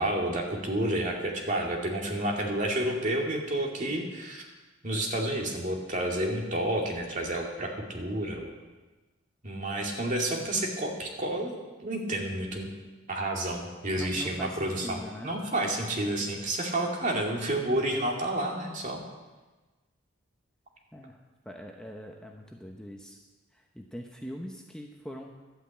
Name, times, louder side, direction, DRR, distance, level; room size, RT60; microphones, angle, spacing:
voice 1, 0.0-4.4 4.8-8.5 9.4-11.5 11.8-12.7 13.1-19.0, right 1 dB, 40° right, 0 dB, 2.3 m, -30 dB
voice 2, 14.0-15.4 20.9-23.2 23.5-25.4, equal, 5° left, 1 dB, 0.8 m, -42 dB
12.0 x 9.0 x 8.4 m, 1.2 s
head